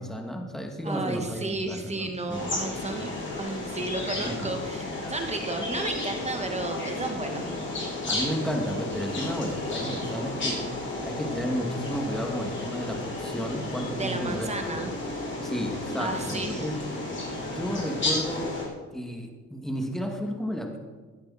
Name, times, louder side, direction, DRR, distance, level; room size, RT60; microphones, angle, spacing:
voice 1, 0.0-3.1 4.1-4.5 5.7-5.8 8.1-10.6 11.0-14.5 15.4-16.8 17.4-18.5 18.9-20.8, equal, ahead, 2 dB, 2.4 m, -33 dB
voice 2, 0.8-3.1 3.4-7.5 14.0-14.9 16.0-16.7, right 2 dB, 20° right, 4 dB, 1.9 m, -33 dB
sound 1, 2.3-18.6, left 2 dB, 40° left, 5.2 m, -33 dB
17.0 x 11.5 x 4.3 m, 1.4 s
cardioid pair, 90°, 30 cm